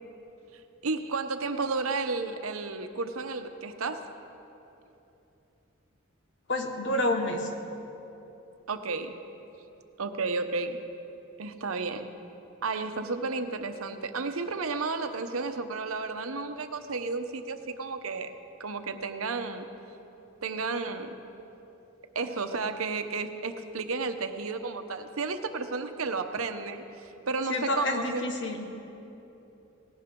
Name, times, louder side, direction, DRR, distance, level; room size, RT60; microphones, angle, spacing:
voice 1, 0.5-4.1 8.7-9.2 10.0-10.8 11.4-12.1 12.6-18.3 18.6-19.7 20.4-21.1 22.1-28.2, right 4 dB, 90° right, 8 dB, 0.9 m, -32 dB
voice 2, 6.5-7.5 27.5-28.7, left 1 dB, 60° left, 3 dB, 1.5 m, -29 dB
19.0 x 17.0 x 3.8 m, 2.9 s
head